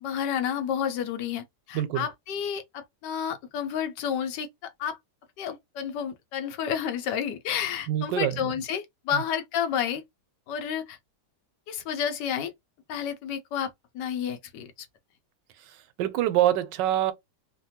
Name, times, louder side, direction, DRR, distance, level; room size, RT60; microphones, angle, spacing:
voice 1, 0.0-5.0 5.4-10.0 10.5-11.0 11.7-12.5 12.9-13.7 13.9-14.7, left 8 dB, 85° left, 1.3 m, -30 dB
voice 2, 1.7-2.1 7.9-8.5 9.1-9.2 15.6-17.1, right 12 dB, 90° right, 1.2 m, -26 dB
3.3 x 2.2 x 2.8 m
omnidirectional pair, 1.9 m